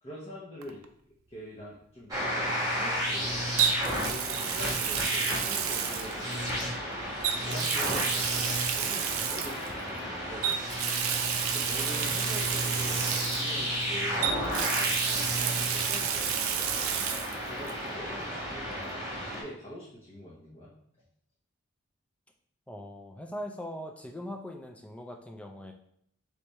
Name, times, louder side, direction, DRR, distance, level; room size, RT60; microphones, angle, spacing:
voice 1, 0.0-0.8 1.3-3.4 4.1-6.8 7.5-10.7 11.5-14.3 14.7-16.9 17.5-20.7, equal, 25° left, -7 dB, 0.8 m, -44 dB
Water tap faucet, 0.6-0.8 3.6-6.6 7.2-9.7 10.4-13.8 14.2-17.4 17.7-17.8 19.3-19.4, right 8 dB, 85° right, 0.4 m, -31 dB
sound 1, 2.1-19.4, equal, 15° right, 1.1 m, -32 dB
voice 2, 22.7-25.7, equal, 5° left, 3 dB, 0.3 m, -41 dB
3.4 x 3.3 x 4.1 m, 0.70 s
head